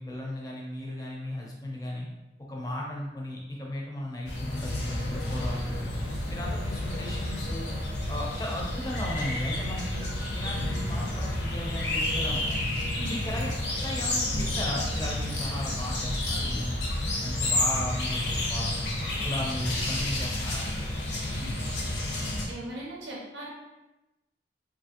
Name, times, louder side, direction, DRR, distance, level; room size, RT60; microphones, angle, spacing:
voice 1, 0.0-2.1 2.5-5.8 6.3-7.7 8.1-12.6 13.1-16.9 17.2-18.8 19.2-20.8, left 1 dB, 20° left, -2 dB, 0.5 m, -36 dB
sound 1, 4.3-22.5, left 1 dB, 70° left, 0.7 m, -30 dB
voice 2, 22.5-23.5, right 1 dB, 90° right, -4 dB, 0.5 m, -39 dB
2.8 x 2.5 x 2.8 m, 1.0 s
head